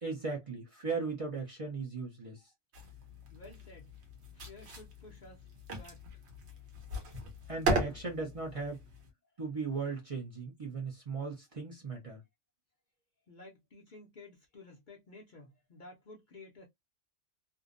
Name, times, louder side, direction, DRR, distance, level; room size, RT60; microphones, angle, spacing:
voice 1, 0.0-2.4 7.5-8.8 9.4-12.2, right 4 dB, 35° right, 0.6 m, -37 dB
sound 1, 2.7-9.1, right 2 dB, 65° right, 1.0 m, -38 dB
voice 2, 3.3-3.9 4.3-6.6 7.0-7.1 7.4-7.5 13.3-16.7, left 2 dB, 55° left, 0.6 m, -54 dB
2.6 x 2.0 x 2.4 m
omnidirectional pair, 1.2 m